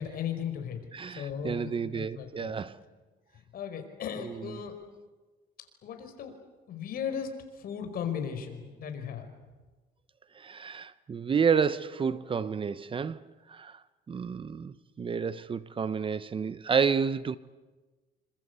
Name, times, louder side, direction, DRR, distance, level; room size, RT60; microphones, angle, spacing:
voice 1, 0.0-0.8 1.1-2.6 3.5-4.8 5.8-6.3 6.7-7.3 7.6-9.3, left 8 dB, 60° left, 5.2 m, -36 dB
voice 2, 0.9-2.8 4.2-4.6 10.4-13.2 13.5-13.8 14.1-17.4, right 6 dB, 30° right, 0.8 m, -30 dB
27.5 x 26.0 x 8.2 m
cardioid pair, 110°, 17 cm